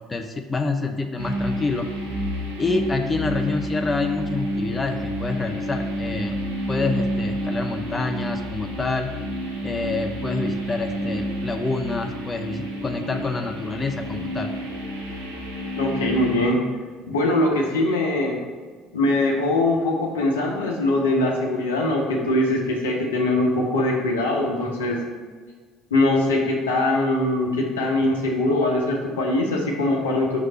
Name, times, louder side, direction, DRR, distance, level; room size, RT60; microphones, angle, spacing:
voice 1, 0.1-1.9 2.6-6.4 6.7-9.1 9.6-14.5, left 3 dB, 25° left, 5 dB, 0.5 m, -27 dB
sound 1, 1.2-16.5, equal, 85° right, 0.7 m, -29 dB
voice 2, 15.8-16.6 17.1-18.4 18.9-25.0 25.9-30.4, left 2 dB, 80° left, 0 dB, 0.9 m, -22 dB
5.9 x 3.2 x 5.7 m, 1.5 s
figure-of-eight pair, 60°, 0 cm